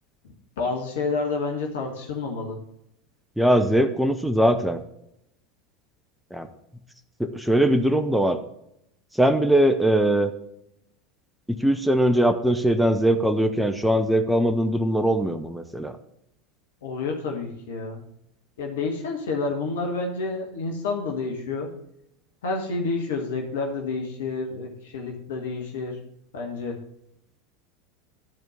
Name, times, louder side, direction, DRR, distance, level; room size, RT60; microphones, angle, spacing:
voice 1, 0.6-2.6 16.8-18.0 18.6-21.7 22.4-26.0 26.3-26.8, left 3 dB, 65° left, 2 dB, 1.4 m, -29 dB
voice 2, 3.4-4.8 6.3-6.5 7.2-8.4 9.1-10.3 11.5-16.0, right 1 dB, ahead, 7 dB, 0.7 m, -21 dB
11.0 x 4.5 x 6.7 m, 0.78 s
figure-of-eight pair, 80°, 0 cm